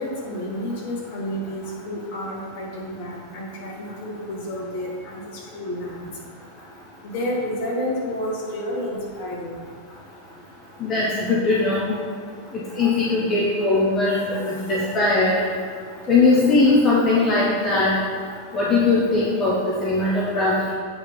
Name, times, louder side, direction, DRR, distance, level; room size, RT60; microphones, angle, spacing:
voice 1, 0.0-6.1 7.0-9.6, left 1 dB, 50° left, -3 dB, 2.3 m, -30 dB
voice 2, 10.8-11.9 12.8-15.4 16.1-17.9 18.5-20.7, left 3 dB, 30° left, -6 dB, 1.6 m, -20 dB
8.6 x 5.0 x 5.5 m, 2.1 s
figure-of-eight pair, 90°, 0 cm